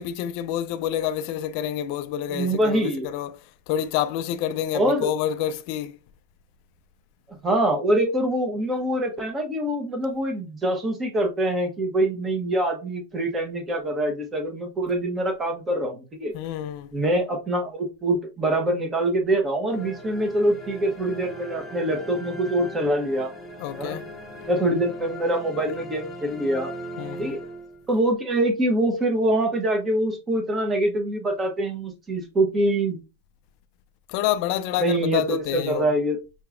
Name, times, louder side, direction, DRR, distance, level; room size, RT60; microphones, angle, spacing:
voice 1, 0.0-6.0 16.3-16.9 23.6-24.1 27.0-27.4 34.1-35.9, left 11 dB, 45° left, 0.4 m, -28 dB
voice 2, 2.3-3.0 4.7-5.1 7.4-16.3 16.9-23.3 23.8-24.0 24.5-26.7 27.2-27.4 27.9-33.0 34.8-36.2, right 1 dB, 15° right, 1.1 m, -24 dB
sound 1, 19.7-28.1, equal, 5° left, 1.8 m, -39 dB
5.8 x 2.9 x 2.5 m
supercardioid pair, 140°, 0 cm